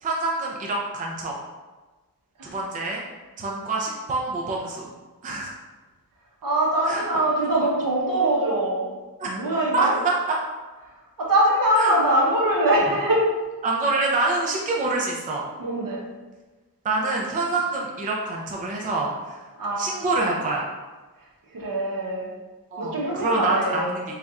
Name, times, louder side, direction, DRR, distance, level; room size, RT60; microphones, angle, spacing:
voice 1, 0.0-1.3 2.4-3.0 3.4-4.9 5.2-5.5 6.8-7.0 9.2-9.4 9.7-10.4 11.8-12.0 13.6-15.4 16.8-19.4 19.8-20.6 22.7-24.0, right 3 dB, 20° right, -2 dB, 0.4 m, -26 dB
voice 2, 6.4-8.9 9.2-10.0 11.2-13.2 15.6-16.0 19.6-19.9 21.5-22.3 22.8-23.9, right 1 dB, 60° right, -3 dB, 1.0 m, -22 dB
4.0 x 3.4 x 2.4 m, 1.2 s
wide cardioid pair, 135°, 37 cm